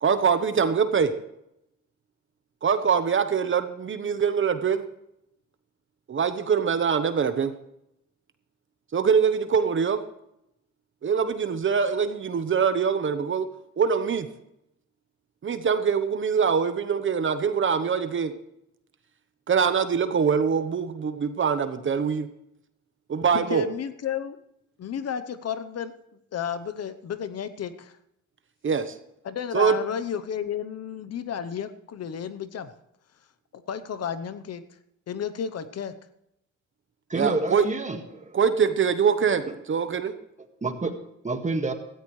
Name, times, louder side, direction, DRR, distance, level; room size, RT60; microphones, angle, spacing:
voice 1, 0.0-1.1 2.6-4.8 6.1-7.5 8.9-10.0 11.0-13.5 13.8-14.3 15.4-18.3 19.5-22.3 23.1-23.6 28.6-28.9 29.5-29.7 37.1-37.6 38.3-39.4 39.7-40.1, right 6 dB, 40° right, 10 dB, 1.1 m, -23 dB
voice 2, 23.3-24.4 24.8-25.9 26.3-27.9 29.2-32.7 33.5-34.6 35.1-35.9, left 8 dB, 55° left, 12 dB, 0.9 m, -32 dB
voice 3, 37.1-38.4 40.6-41.0 41.2-41.7, right 3 dB, 25° right, 6 dB, 1.8 m, -28 dB
16.5 x 14.0 x 3.2 m, 0.81 s
cardioid pair, 90°, 30 cm